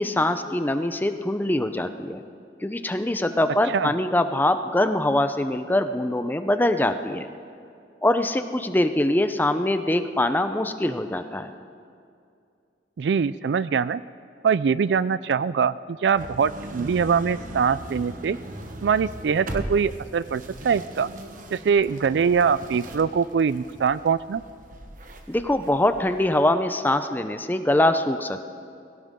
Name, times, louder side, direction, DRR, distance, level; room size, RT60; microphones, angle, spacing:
voice 1, 0.0-2.2 2.6-7.3 8.0-11.5 25.3-28.4, left 1 dB, 10° left, 9 dB, 0.6 m, -23 dB
voice 2, 13.0-14.0 14.4-18.4 18.8-21.1 21.5-24.4, right 6 dB, 75° right, 17 dB, 0.4 m, -23 dB
sound 1, 16.2-26.4, right 1 dB, 50° right, 1.2 m, -39 dB
21.5 x 17.0 x 3.7 m, 2.4 s
head